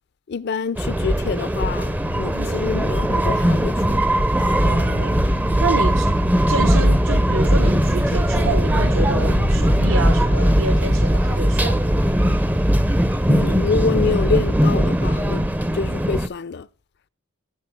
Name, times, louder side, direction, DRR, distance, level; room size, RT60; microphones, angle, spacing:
voice 1, 0.3-4.0 4.3-4.7 13.3-15.4 15.7-16.7, left 5 dB, 55° left, 0.4 m, -26 dB
sound 1, 0.8-16.3, equal, 10° right, 0.5 m, -19 dB
sound 2, 1.4-1.5 1.7-10.1, left 1 dB, 80° left, 1.0 m, -32 dB
voice 2, 2.3-2.7 4.6-5.2 5.6-6.1 6.5-12.0, right 3 dB, 70° right, 1.0 m, -28 dB
18.5 x 6.7 x 4.6 m
head